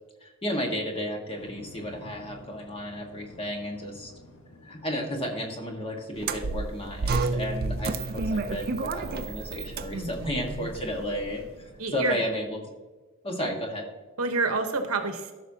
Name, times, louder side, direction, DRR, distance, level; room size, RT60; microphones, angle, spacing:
voice 1, 0.2-4.1 4.6-11.4 11.9-12.6 13.2-13.8, equal, 25° left, 1 dB, 1.6 m, -33 dB
sound 1, 1.4-12.5, equal, 80° left, 1.3 m, -51 dB
sound 2, 6.2-11.4, right 3 dB, 45° right, 0.5 m, -31 dB
voice 2, 9.9-10.7 11.8-12.2 13.4-13.5 14.2-15.3, right 3 dB, 70° right, 6 dB, 1.1 m, -29 dB
14.5 x 6.2 x 2.8 m, 1.3 s
head